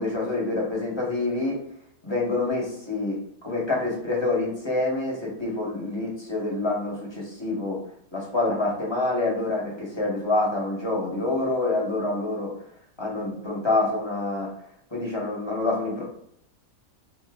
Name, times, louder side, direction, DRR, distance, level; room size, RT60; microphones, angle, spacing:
voice 1, 0.0-1.6 2.0-3.2 3.4-7.8 8.1-12.5 13.0-14.5 14.9-16.0, left 2 dB, 20° left, -3 dB, 1.1 m, -26 dB
6.2 x 2.8 x 2.4 m, 0.71 s
omnidirectional pair, 1.6 m